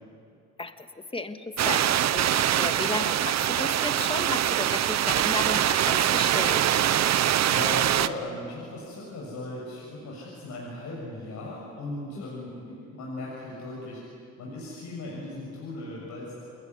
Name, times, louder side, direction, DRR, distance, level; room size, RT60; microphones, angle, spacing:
voice 1, 0.6-6.6, left 3 dB, 20° left, 8 dB, 1.7 m, -34 dB
sound 1, 1.6-8.1, right 11 dB, 60° right, 0.9 m, -23 dB
voice 2, 7.1-14.0 14.4-16.4, left 2 dB, 70° left, -4 dB, 7.0 m, -37 dB
29.5 x 19.5 x 9.5 m, 2.6 s
cardioid pair, 90°, 30 cm